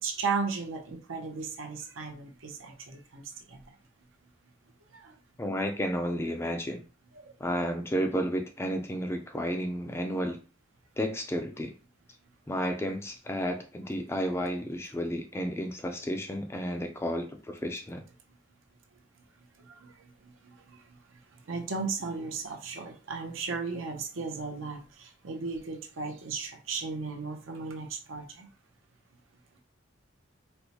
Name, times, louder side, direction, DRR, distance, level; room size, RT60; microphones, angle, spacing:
voice 1, 0.0-3.8 4.9-5.2 7.2-7.3 18.3-18.4 18.9-28.5, right 4 dB, 85° right, 3 dB, 0.7 m, -36 dB
voice 2, 5.4-6.8 7.4-10.4 11.0-11.8 12.5-18.0, equal, 15° left, 5 dB, 0.3 m, -32 dB
4.3 x 2.1 x 2.8 m, 0.35 s
head